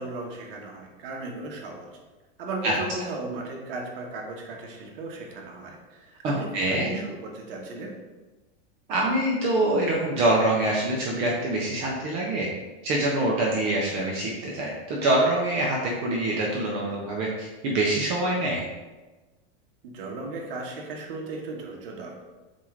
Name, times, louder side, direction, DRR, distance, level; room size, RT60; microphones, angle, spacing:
voice 1, 0.0-1.9 2.4-7.9 19.8-22.2, right 3 dB, 60° right, 0 dB, 1.1 m, -36 dB
voice 2, 6.2-7.0 8.9-12.5 12.8-18.6, right 1 dB, 20° right, -3 dB, 0.3 m, -25 dB
7.2 x 2.4 x 3.1 m, 1.2 s
supercardioid pair, 165°, 31 cm